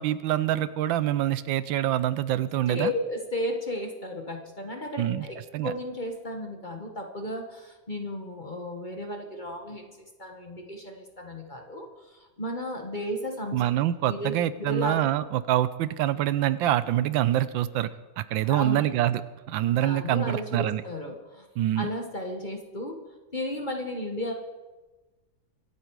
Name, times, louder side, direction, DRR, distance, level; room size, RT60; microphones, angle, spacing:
voice 1, 0.0-2.9 5.0-5.3 5.5-5.7 13.5-17.9 18.2-19.2 19.5-20.8 21.6-21.9, right 13 dB, 80° right, 15 dB, 1.3 m, -25 dB
voice 2, 2.7-9.9 10.2-13.6 14.1-15.1 18.5-18.8 19.8-21.5 21.8-22.9 23.3-24.3, left 1 dB, 25° left, 3 dB, 1.3 m, -34 dB
25.0 x 8.6 x 4.7 m, 1.2 s
omnidirectional pair, 2.1 m